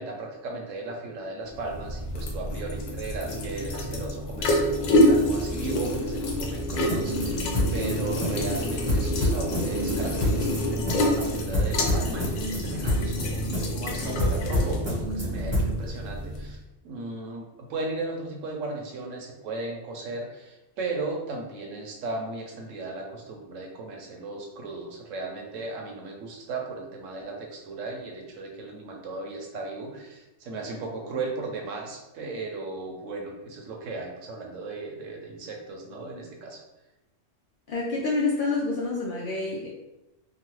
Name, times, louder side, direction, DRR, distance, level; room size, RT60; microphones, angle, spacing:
voice 1, 0.0-36.6, right 3 dB, 80° right, 1 dB, 1.0 m, -36 dB
sound 1, 1.5-16.6, left 1 dB, 85° left, 1.0 m, -28 dB
sound 2, 6.7-15.8, equal, 15° right, 0.9 m, -28 dB
voice 2, 37.7-39.7, left 3 dB, 65° left, -5 dB, 0.5 m, -27 dB
2.9 x 2.2 x 3.0 m, 0.97 s
omnidirectional pair, 1.3 m